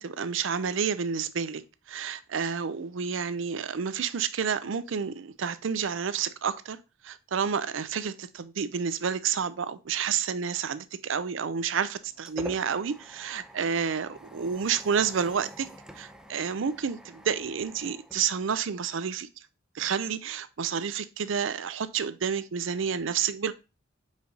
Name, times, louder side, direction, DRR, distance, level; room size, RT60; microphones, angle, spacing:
voice 1, 0.0-1.6 1.9-6.8 7.0-15.7 16.0-19.3 19.7-23.5, right 6 dB, 70° right, 0.5 m, -30 dB
sound 1, 11.5-18.9, equal, 5° right, 0.6 m, -47 dB
5.3 x 4.9 x 4.0 m
head